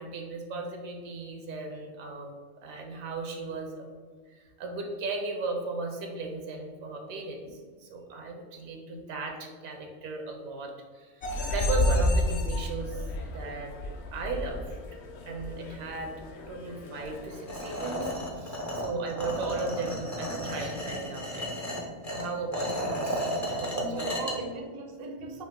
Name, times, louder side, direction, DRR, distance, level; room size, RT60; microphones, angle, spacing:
voice 1, 0.0-2.3 2.6-3.9 4.3-13.7 14.1-14.8 15.2-16.1 16.5-21.5 22.1-24.3, right 3 dB, 75° right, 3 dB, 1.1 m, -36 dB
sound 1, 11.2-18.1, left 1 dB, 60° left, 0.7 m, -31 dB
sound 2, 17.5-24.3, equal, 25° left, 0.4 m, -33 dB
voice 2, 23.3-25.4, right 2 dB, 55° right, 2 dB, 0.7 m, -39 dB
5.8 x 2.5 x 3.6 m, 1.5 s
omnidirectional pair, 1.5 m